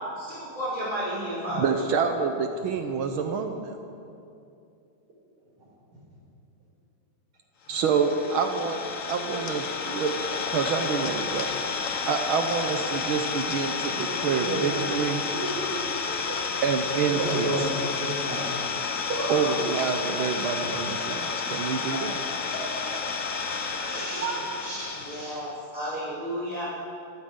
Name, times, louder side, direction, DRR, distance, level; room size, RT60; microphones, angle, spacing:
voice 1, 0.2-1.7 25.0-26.6, equal, 20° left, -11 dB, 5.2 m, -32 dB
voice 2, 1.5-3.8 7.7-8.8 9.1-11.5 12.1-15.2 16.6-17.7 19.3-22.2, right 6 dB, 75° right, 5 dB, 1.6 m, -27 dB
Idling, 7.7-25.5, left 5 dB, 50° left, 1.1 m, -31 dB
voice 3, 14.4-14.9 15.3-16.4 17.1-17.7 18.0-18.5 19.1-19.4 20.6-20.7 21.9-22.0 22.5-22.6 22.9-23.0 23.8-25.4, right 2 dB, 90° right, -7 dB, 5.3 m, -32 dB
26.5 x 14.0 x 3.8 m, 2.6 s
omnidirectional pair, 2.4 m